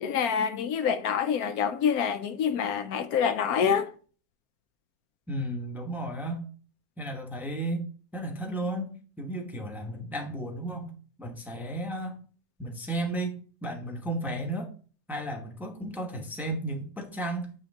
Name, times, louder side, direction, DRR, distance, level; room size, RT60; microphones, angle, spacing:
voice 1, 0.0-3.9, left 7 dB, 75° left, 1.0 m, -26 dB
voice 2, 5.3-6.4 7.0-7.9 8.1-10.9 11.2-12.2 12.6-14.7 15.1-17.5, right 1 dB, ahead, 0.8 m, -34 dB
8.6 x 3.8 x 3.6 m
omnidirectional pair, 1.7 m